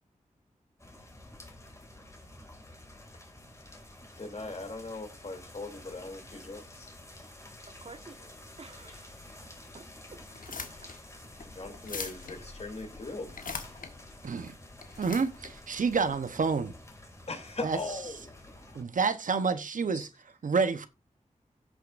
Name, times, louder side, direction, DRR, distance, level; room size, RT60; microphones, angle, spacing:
sound 1, 0.8-18.8, left 1 dB, 20° left, 2.4 m, -50 dB
voice 1, 4.2-6.9 11.4-13.4 17.2-18.9 19.9-20.1, left 2 dB, 50° left, 2.9 m, -40 dB
voice 2, 7.7-8.3 8.6-9.4 9.7-10.2 10.5-10.6, right 3 dB, 45° right, 1.0 m, -50 dB
sound 2, 10.3-16.7, left 5 dB, 90° left, 1.3 m, -43 dB
voice 3, 14.2-14.5 15.0-16.7 17.6-17.8 18.7-20.1 20.4-20.9, right 5 dB, 75° right, 0.9 m, -28 dB
16.5 x 6.5 x 2.5 m
wide cardioid pair, 85°, 14 cm